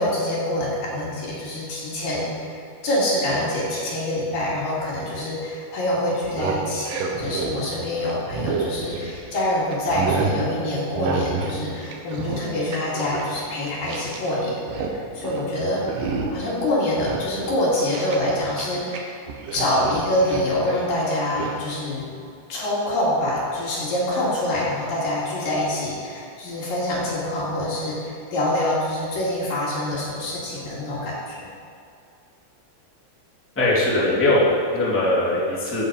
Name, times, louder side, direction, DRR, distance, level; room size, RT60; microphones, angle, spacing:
voice 1, 0.0-14.5 14.8-15.8 16.3-19.2 19.5-22.1 22.5-31.4, left 1 dB, 55° left, -6 dB, 3.5 m, -25 dB
sound 1, 6.1-9.4 9.7-10.4 10.9-11.6 11.8-14.3 14.5-15.0 15.2-15.5 15.9-16.5 16.9-19.0 19.3-20.5 21.3-21.6, right 4 dB, 75° right, 2.0 m, -29 dB
voice 2, 33.5-35.8, left 1 dB, 5° left, -7 dB, 1.1 m, -20 dB
14.5 x 8.3 x 5.2 m, 2.5 s
omnidirectional pair, 5.6 m